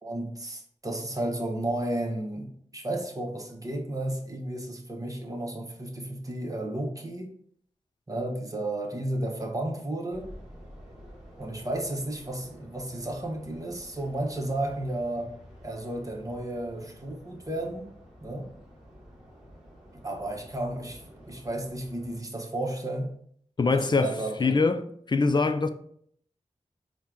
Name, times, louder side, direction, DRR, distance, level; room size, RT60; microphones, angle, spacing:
voice 1, 0.0-7.3 8.1-10.3 11.4-15.3 15.6-17.9 18.2-18.5 19.9-23.1 23.7-24.6, right 1 dB, 30° right, 0.9 m, -33 dB
sound 1, 10.1-22.2, equal, 5° right, 1.3 m, -50 dB
voice 2, 23.6-24.8 25.1-25.7, left 4 dB, 35° left, 0.4 m, -23 dB
4.4 x 2.2 x 3.6 m
cardioid pair, 55°, 13 cm